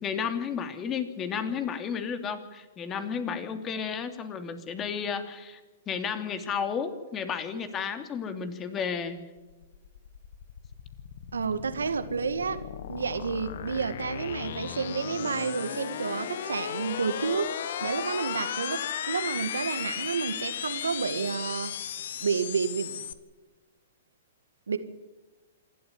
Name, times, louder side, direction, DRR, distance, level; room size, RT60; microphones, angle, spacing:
voice 1, 0.0-5.6 5.9-9.2, left 6 dB, 25° left, 8 dB, 2.9 m, -32 dB
sound 1, 9.4-23.1, left 9 dB, 65° left, 1.5 m, -36 dB
voice 2, 11.3-12.6 12.9-21.7 22.2-23.0 24.7-24.8, right 5 dB, 80° right, 11 dB, 2.0 m, -30 dB
27.0 x 12.5 x 9.6 m, 1.2 s
hypercardioid pair, 115°, 0 cm